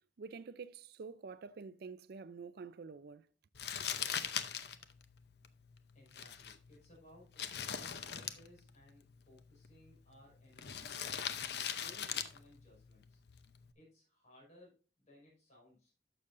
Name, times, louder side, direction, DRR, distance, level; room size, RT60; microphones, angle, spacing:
voice 1, 0.2-3.3, right 5 dB, 60° right, 0.4 m, -48 dB
Crumpling crinkling, 3.5-13.7, left 8 dB, 65° left, 0.7 m, -43 dB
voice 2, 5.9-13.2 13.8-16.0, left 1 dB, 40° left, 5.2 m, -62 dB
12.0 x 6.8 x 2.6 m
head